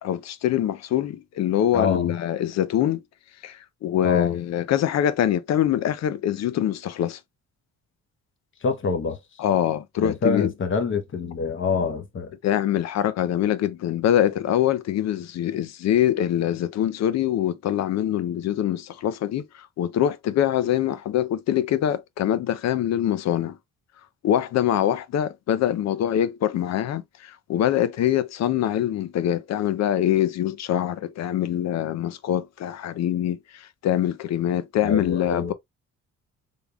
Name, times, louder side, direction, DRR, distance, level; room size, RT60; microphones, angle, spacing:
voice 1, 0.0-3.0 3.4-7.2 9.4-10.5 12.4-23.6 24.2-35.5, left 11 dB, 60° left, 0.5 m, -24 dB
voice 2, 1.7-2.1 4.0-4.3 8.6-9.2 10.0-12.3 34.8-35.5, left 5 dB, 40° left, 1.0 m, -26 dB
3.6 x 3.5 x 2.2 m
cardioid pair, 90°, 30 cm